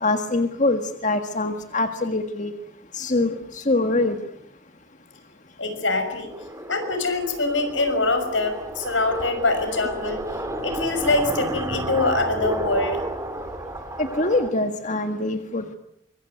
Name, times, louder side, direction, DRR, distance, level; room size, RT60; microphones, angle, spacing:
voice 1, 0.0-2.5 3.0-3.3 3.7-4.2 14.0-15.8, left 2 dB, 40° left, 7 dB, 1.7 m, -23 dB
voice 2, 5.6-6.3 6.7-10.3 10.6-13.0, left 2 dB, 80° left, 8 dB, 6.2 m, -24 dB
sound 1, 6.2-14.5, right 1 dB, 15° right, 2.9 m, -32 dB
25.0 x 23.0 x 9.2 m, 0.74 s
head